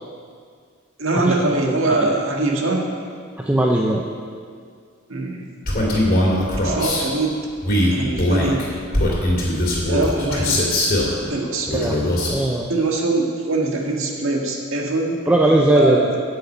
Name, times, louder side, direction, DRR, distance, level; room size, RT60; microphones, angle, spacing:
voice 1, 1.0-2.9 5.1-5.4 6.6-7.4 7.9-8.6 9.9-10.6 11.2-11.7 12.7-15.1 15.7-16.2, right 2 dB, 70° right, 0 dB, 1.7 m, -22 dB
voice 2, 3.4-4.0 11.7-12.0 12.3-12.7 15.3-16.0, right 1 dB, 5° right, -1 dB, 0.6 m, -18 dB
Male speech man speaking, 5.7-7.0 7.6-11.1 11.7-12.4, left 1 dB, 45° left, 2.5 m, -20 dB
9.6 x 6.6 x 8.4 m, 2.1 s
head